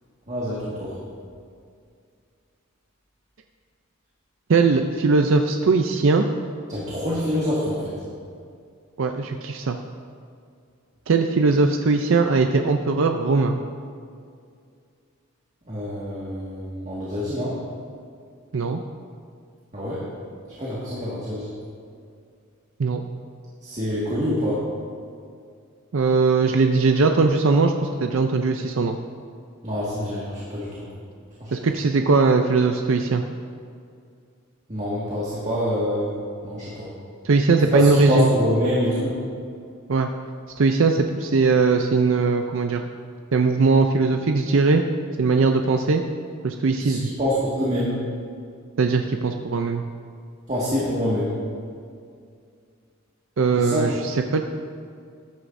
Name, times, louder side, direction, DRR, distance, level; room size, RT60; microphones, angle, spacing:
voice 1, 0.3-1.0 6.7-8.0 15.7-17.6 19.7-20.0 20.6-21.5 23.6-24.6 29.6-30.9 31.4-31.6 34.7-36.1 36.4-36.9 37.7-39.2 46.8-48.0 50.5-51.3 53.6-54.0, equal, 30° right, -7 dB, 1.8 m, -26 dB
voice 2, 4.5-6.3 9.0-9.8 11.1-13.6 18.5-18.8 22.8-23.0 25.9-29.0 31.5-33.2 37.2-38.3 39.9-40.1 40.6-42.8 43.3-44.8 45.2-46.0 46.4-47.1 48.8-49.8 53.4-54.4, right 4 dB, 65° right, 5 dB, 0.5 m, -20 dB
14.0 x 11.0 x 2.6 m, 2.3 s
head